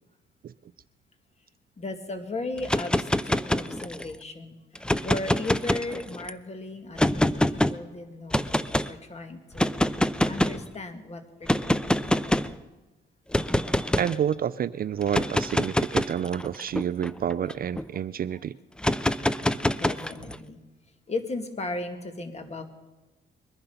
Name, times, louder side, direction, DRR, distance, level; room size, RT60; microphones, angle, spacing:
voice 1, 1.8-9.8 10.3-12.4 17.4-17.5 19.7-20.6 21.1-22.6, left 2 dB, 35° left, 6 dB, 2.1 m, -36 dB
sound 1, 2.6-4.1 4.8-6.3 7.0-7.7 8.3-8.9 9.6-10.7 11.5-12.6 13.3-14.2 15.0-17.8 18.8-20.4, left 1 dB, 5° left, 0.5 m, -25 dB
voice 2, 14.0-18.5, right 9 dB, 50° right, 15 dB, 0.5 m, -29 dB
22.0 x 10.5 x 5.7 m, 1.2 s
cardioid pair, 90°, 20 cm